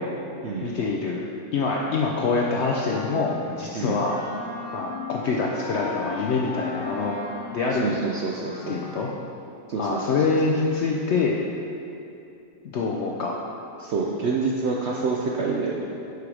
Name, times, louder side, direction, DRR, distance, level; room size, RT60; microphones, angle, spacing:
voice 1, 0.6-1.2 1.5-4.2 4.7-7.1 7.5-7.8 8.7-9.1 9.8-11.4 12.6-13.4, left 4 dB, 85° left, -1 dB, 0.6 m, -25 dB
Wind instrument woodwind instrument, 2.7-9.3, left 3 dB, 55° left, 1.2 m, -37 dB
voice 2, 7.7-8.8 9.7-10.2 13.8-15.9, right 4 dB, 75° right, -2 dB, 0.6 m, -27 dB
6.8 x 4.7 x 4.9 m, 2.7 s
omnidirectional pair, 1.7 m